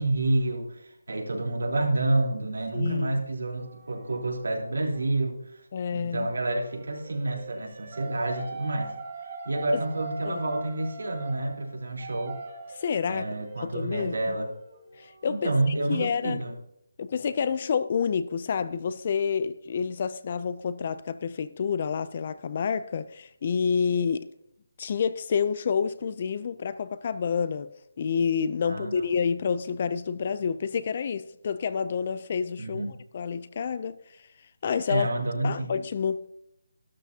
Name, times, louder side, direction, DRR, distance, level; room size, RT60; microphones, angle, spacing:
voice 1, 0.0-5.6 5.9-8.9 9.5-12.4 13.1-14.5 15.3-16.6 28.6-28.9 32.6-32.9 34.9-35.7, right 2 dB, 90° right, 3.5 m, -29 dB
voice 2, 2.7-3.2 5.7-6.3 9.7-9.8 10.3-10.4 12.8-14.3 15.0-16.4 17.0-24.3 24.8-27.7 28.0-32.8 33.1-34.0 34.6-35.1 35.4-36.2, left 6 dB, 25° left, 0.3 m, -28 dB
sound 1, 3.6-5.1 6.3-15.4, right 4 dB, 20° right, 1.5 m, -42 dB
13.0 x 12.5 x 2.7 m
hypercardioid pair, 180°, 0 cm